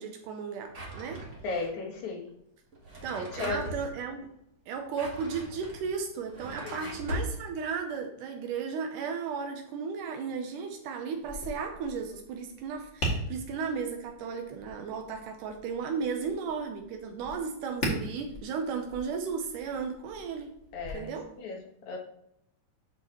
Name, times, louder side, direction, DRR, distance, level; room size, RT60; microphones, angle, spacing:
voice 1, 0.0-1.3 3.0-4.3 4.7-20.6 20.9-21.3, right 5 dB, 85° right, 4 dB, 2.4 m, -35 dB
Drawer open or close, 0.7-1.7 2.7-3.8 4.7-7.3, equal, 35° right, 1.2 m, -39 dB
voice 2, 1.4-2.3 3.3-3.6 6.6-6.8 20.7-21.6 21.9-22.0, left 4 dB, 70° left, -1 dB, 2.9 m, -35 dB
Tap, 11.2-20.9, equal, 25° left, 1.7 m, -40 dB
12.0 x 4.7 x 3.1 m, 0.76 s
omnidirectional pair, 3.6 m